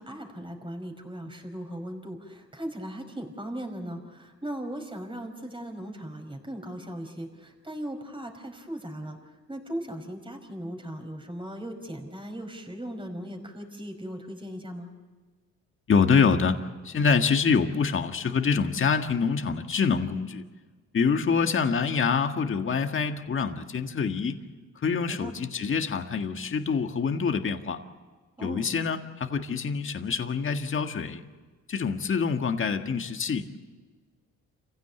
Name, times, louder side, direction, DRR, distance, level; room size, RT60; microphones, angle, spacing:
voice 1, 0.0-9.2 9.5-14.9 25.2-25.3 28.4-28.6, right 1 dB, 15° right, 5 dB, 5.2 m, -38 dB
voice 2, 15.9-16.6 16.8-20.4 20.9-24.4 24.8-27.8 28.4-31.2 31.7-33.7, left 5 dB, 40° left, 6 dB, 1.7 m, -26 dB
28.0 x 16.0 x 8.2 m, 1.4 s
cardioid pair, 90°, 30 cm